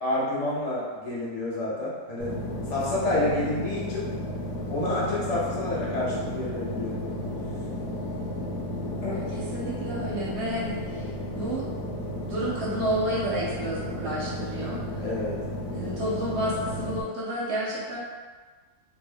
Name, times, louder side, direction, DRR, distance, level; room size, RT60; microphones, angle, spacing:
voice 1, 0.0-2.3 2.7-4.1 4.7-7.0 9.0-9.2 15.0-15.4, left 1 dB, 35° left, -7 dB, 0.6 m, -29 dB
sound 1, 2.2-17.0, left 1 dB, 90° left, 1.2 m, -33 dB
voice 2, 9.1-11.1 11.3-11.6 12.2-15.0 15.8-18.0, right 1 dB, 60° right, -6 dB, 0.7 m, -30 dB
2.6 x 2.4 x 3.4 m, 1.4 s
omnidirectional pair, 1.7 m